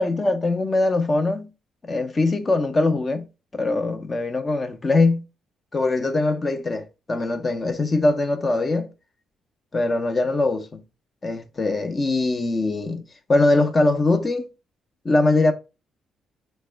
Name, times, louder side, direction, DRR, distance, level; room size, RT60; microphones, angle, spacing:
voice 1, 0.0-1.5 1.8-3.2 3.5-5.2 5.7-8.9 9.7-10.8 11.2-13.0 13.3-14.5 15.0-15.5, left 2 dB, 30° left, 0.6 m, -22 dB
3.5 x 2.1 x 3.3 m
cardioid pair, 90°, 0 cm